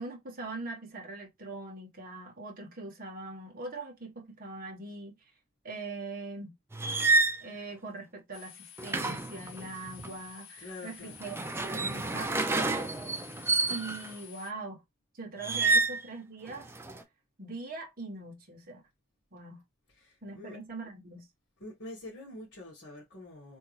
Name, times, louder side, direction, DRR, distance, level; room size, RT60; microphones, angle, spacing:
voice 1, 0.0-5.1 5.6-6.5 7.4-11.4 11.6-13.1 13.7-14.8 15.1-16.7 17.4-18.8 19.3-19.6 20.2-21.3, right 3 dB, 45° right, 1.0 m, -42 dB
sound 1, 6.7-7.4 8.8-10.1 11.1-14.1 15.4-16.0 16.5-17.0, right 3 dB, 10° right, 0.4 m, -29 dB
sound 2, 8.3-14.5, left 9 dB, 70° left, 1.2 m, -51 dB
voice 2, 10.6-11.2 19.9-20.6 21.6-23.6, left 2 dB, 55° left, 1.7 m, -46 dB
3.5 x 2.7 x 3.1 m
head